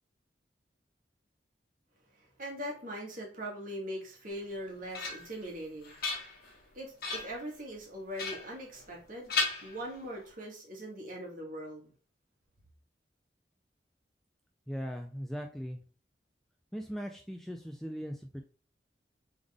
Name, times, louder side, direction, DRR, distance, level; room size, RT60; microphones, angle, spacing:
voice 1, 2.1-6.0 6.7-9.3 9.6-11.9, equal, 50° right, -1 dB, 1.5 m, -41 dB
sound 1, 4.4-5.4 5.8-6.6 7.0-7.4 8.2-9.0 9.3-10.3, left 3 dB, 55° left, 1.4 m, -36 dB
voice 2, 14.7-15.8 16.7-18.4, equal, ahead, 3 dB, 0.3 m, -39 dB
3.6 x 3.6 x 3.4 m, 0.38 s
head